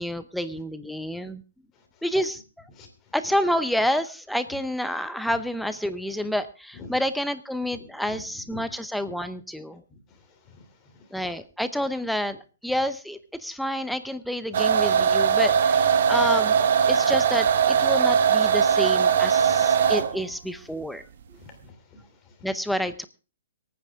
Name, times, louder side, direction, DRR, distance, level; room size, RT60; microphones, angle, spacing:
voice 1, 0.0-1.4 2.0-2.4 3.1-9.8 11.1-16.6 16.9-21.0 22.4-23.0, equal, ahead, 11 dB, 0.7 m, -29 dB
voice 2, 1.7-2.0 2.7-3.1 6.7-6.9 8.1-8.2 8.5-8.6 9.9-11.1 16.0-16.1 19.4-19.5 21.4-22.5, left 4 dB, 20° left, 4 dB, 3.0 m, -48 dB
sound 1, 14.5-20.2, right 7 dB, 55° right, 1.4 m, -20 dB
24.5 x 9.3 x 3.5 m, 0.34 s
hypercardioid pair, 160°, 0 cm